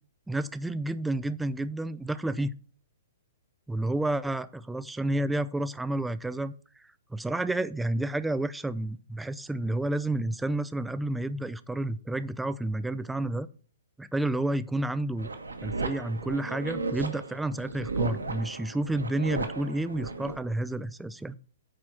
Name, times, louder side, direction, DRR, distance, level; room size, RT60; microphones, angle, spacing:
voice 1, 0.3-2.5 3.7-6.5 7.1-13.5 14.0-15.3 15.6-21.4, right 1 dB, 5° right, 14 dB, 0.4 m, -30 dB
sound 1, 15.2-20.4, right 3 dB, 75° right, 1.5 m, -35 dB
9.8 x 4.4 x 7.4 m, 0.41 s
figure-of-eight pair, 115°, 0 cm